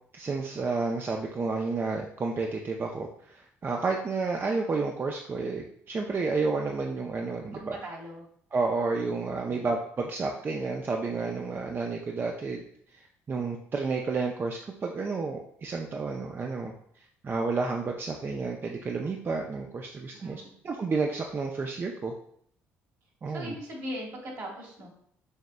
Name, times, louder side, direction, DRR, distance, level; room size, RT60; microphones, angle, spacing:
voice 1, 0.1-7.7 8.5-12.6 12.9-16.7 17.2-22.1 23.2-23.5, right 4 dB, 35° right, 2 dB, 0.5 m, -31 dB
voice 2, 7.5-8.3 9.4-9.7 20.1-20.5 23.3-24.9, equal, 65° right, -2 dB, 1.6 m, -40 dB
6.4 x 3.1 x 2.2 m, 0.66 s
hypercardioid pair, 60°, 6 cm